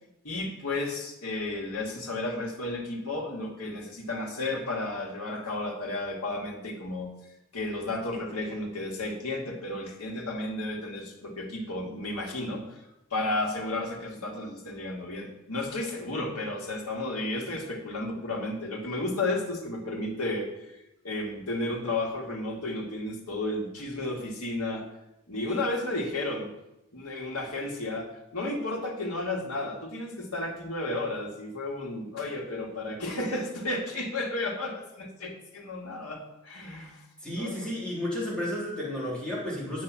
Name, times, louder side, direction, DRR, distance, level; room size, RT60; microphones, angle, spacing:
voice 1, 0.2-7.1 7.5-12.8 13.1-20.5 21.0-24.9 25.3-26.5 26.9-37.0 37.3-37.7, left 2 dB, 85° left, 0 dB, 2.2 m, -33 dB
voice 2, 37.2-39.8, left 1 dB, 5° left, -7 dB, 3.7 m, -32 dB
8.8 x 6.0 x 7.5 m, 0.89 s
head